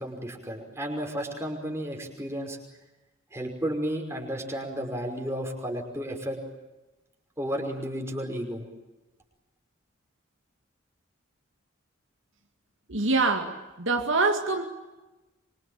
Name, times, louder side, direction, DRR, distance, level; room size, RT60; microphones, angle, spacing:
voice 1, 0.0-2.6 3.3-6.4 7.4-8.6, equal, 15° right, 2 dB, 5.5 m, -32 dB
voice 2, 12.9-14.7, right 3 dB, 65° right, 4 dB, 2.3 m, -25 dB
26.0 x 25.0 x 9.0 m, 1.1 s
head